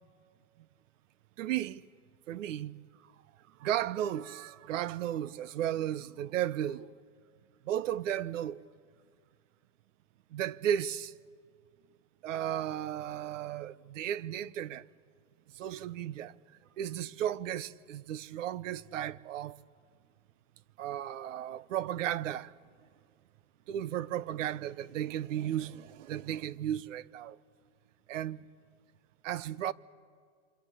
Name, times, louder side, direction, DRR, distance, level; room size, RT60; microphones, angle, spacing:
voice 1, 1.4-1.8 2.3-2.8 3.6-6.9 7.7-8.6 10.3-11.1 12.2-14.8 15.6-16.3 16.8-19.6 20.8-22.5 23.7-27.4 28.1-28.4 29.2-29.7, right 11 dB, 80° right, 0.9 m, -34 dB
27.5 x 26.0 x 8.2 m
supercardioid pair, 145°, 37 cm